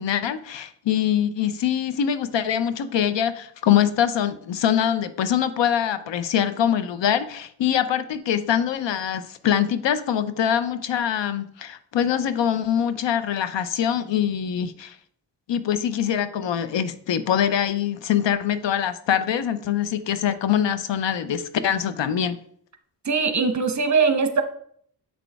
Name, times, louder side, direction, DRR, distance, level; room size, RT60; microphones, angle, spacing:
voice 1, 0.0-14.9 15.5-22.4, left 9 dB, 85° left, 13 dB, 0.6 m, -23 dB
voice 2, 23.0-24.4, right 4 dB, 40° right, 8 dB, 0.9 m, -21 dB
7.9 x 6.1 x 3.4 m, 0.62 s
wide cardioid pair, 95°, 42 cm